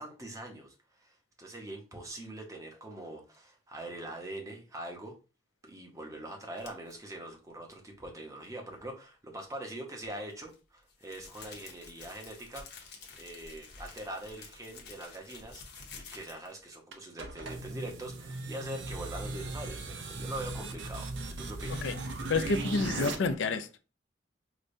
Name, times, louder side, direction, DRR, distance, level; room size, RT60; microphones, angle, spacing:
voice 1, 0.0-5.2 5.6-12.7 13.2-15.6 15.9-21.9, right 1 dB, 15° right, 0.7 m, -43 dB
sound 1, 6.6-6.9 10.0-16.6, left 4 dB, 55° left, 0.8 m, -50 dB
sound 2, 16.9-23.1, right 2 dB, 70° right, 0.6 m, -38 dB
voice 2, 22.3-23.7, left 3 dB, 75° left, 0.4 m, -29 dB
4.8 x 2.2 x 2.6 m
head